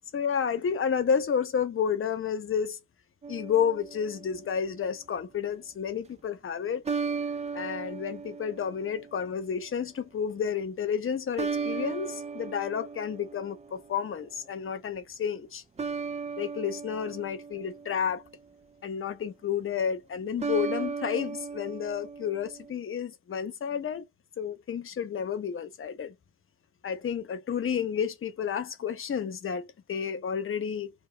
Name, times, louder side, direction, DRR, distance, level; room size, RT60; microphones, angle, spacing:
voice 1, 0.1-2.8 3.3-6.8 7.5-15.6 16.4-18.2 18.8-24.1 24.4-26.1 26.8-30.9, left 7 dB, 45° left, 1.0 m, -31 dB
sound 1, 3.2-4.6 6.8-9.3 11.4-14.0 15.8-18.3 20.4-22.7, right 5 dB, 20° right, 0.6 m, -36 dB
3.6 x 2.3 x 3.0 m
cardioid pair, 90°, 30 cm